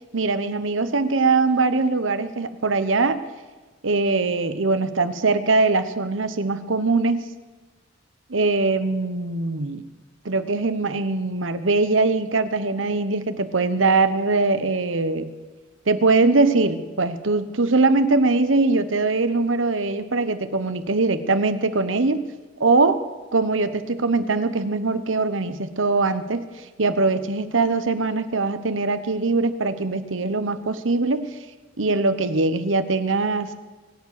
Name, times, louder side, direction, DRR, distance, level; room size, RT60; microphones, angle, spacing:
voice 1, 0.1-3.2 3.8-7.2 8.3-9.8 10.2-15.3 15.9-22.2 22.6-23.0 23.3-26.4 26.8-31.2 31.8-33.5, right 3 dB, 85° right, 12 dB, 1.0 m, -21 dB
24.0 x 8.5 x 6.6 m, 1.3 s
head